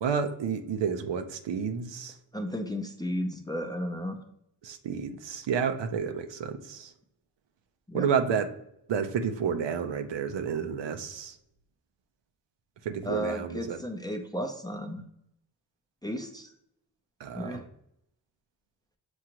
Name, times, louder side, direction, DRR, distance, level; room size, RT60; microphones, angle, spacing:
voice 1, 0.0-2.2 4.6-6.9 7.9-8.5 8.9-11.4 12.8-13.8 17.2-17.6, right 7 dB, 75° right, 8 dB, 0.6 m, -30 dB
voice 2, 2.3-4.2 7.9-8.1 13.0-15.0 16.0-16.5 17.3-17.7, equal, 10° left, 4 dB, 0.4 m, -34 dB
6.2 x 2.5 x 2.8 m, 0.76 s
cardioid pair, 80°, 44 cm